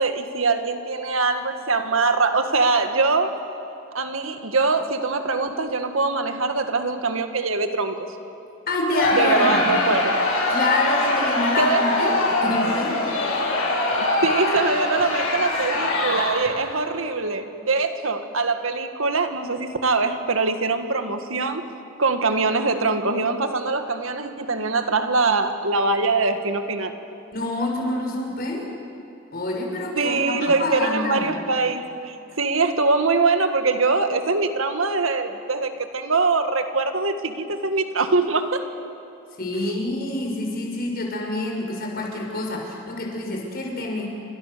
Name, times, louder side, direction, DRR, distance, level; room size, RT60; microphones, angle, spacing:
voice 1, 0.0-3.4 3.9-8.1 9.1-10.2 11.6-11.9 13.9-21.6 22.0-26.9 30.0-38.7, right 3 dB, 75° right, 7 dB, 1.9 m, -23 dB
voice 2, 8.7-9.6 10.5-13.0 27.3-28.6 29.3-31.3 39.4-44.1, left 2 dB, 50° left, 0 dB, 6.0 m, -27 dB
Crowd, 8.9-16.6, left 2 dB, 75° left, 7.3 m, -23 dB
29.5 x 26.0 x 6.9 m, 2.7 s
head